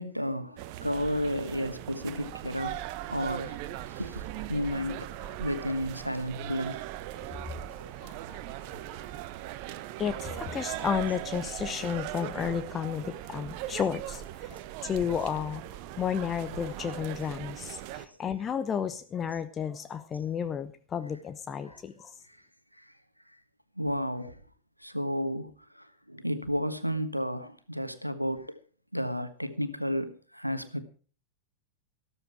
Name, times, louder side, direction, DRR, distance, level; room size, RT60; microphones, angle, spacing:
voice 1, 0.0-2.8 3.1-3.6 3.9-5.1 5.4-6.8 7.7-7.9 8.2-8.4 8.7-9.1 17.9-18.1 21.7-21.8 23.8-24.4 24.8-28.6 28.9-30.8, equal, 90° right, 1.3 m, -32 dB
sound 1, 0.6-18.1, right 14 dB, 45° right, 1.0 m, -39 dB
voice 2, 8.0-8.7 10.0-22.2, left 8 dB, 25° left, 0.9 m, -33 dB
14.5 x 13.5 x 4.7 m
figure-of-eight pair, 90°, 0 cm